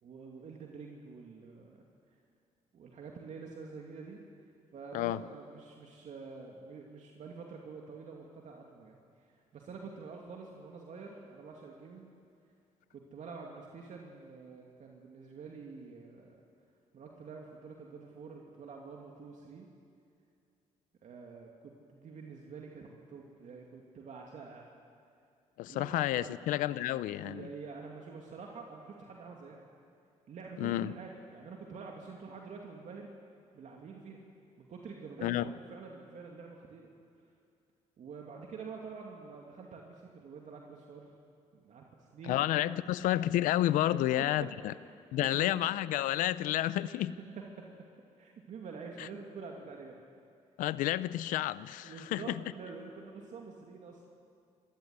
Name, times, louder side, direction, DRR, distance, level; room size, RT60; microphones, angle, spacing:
voice 1, 0.0-1.8 2.7-4.2 4.7-9.0 9.3-12.1 12.9-16.4 16.9-19.7 21.0-24.7 25.7-25.9 26.1-26.3 27.2-29.6 30.3-33.1 33.5-34.2 34.6-36.9 38.0-41.1 41.5-42.8 43.9-44.5 45.2-45.7 47.2-47.3 47.6-47.7 48.2-50.0 51.8-54.0, right 4 dB, 65° right, 0 dB, 2.6 m, -47 dB
voice 2, 25.6-27.5 30.6-30.9 35.2-35.5 42.3-44.7 45.1-47.1 49.0-49.1 50.6-52.4, left 14 dB, 90° left, 17 dB, 0.6 m, -30 dB
25.0 x 15.5 x 9.6 m, 2.4 s
supercardioid pair, 70°, 13 cm